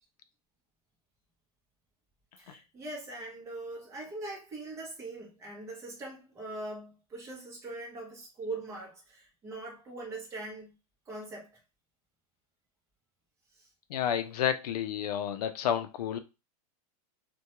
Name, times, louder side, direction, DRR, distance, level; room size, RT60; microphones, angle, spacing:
voice 1, 2.4-10.8 11.1-11.5 13.5-13.7, right 2 dB, 15° right, 0.7 m, -41 dB
voice 2, 13.9-16.2, left 9 dB, 80° left, 0.5 m, -30 dB
2.2 x 2.2 x 2.8 m
supercardioid pair, 165°, 20 cm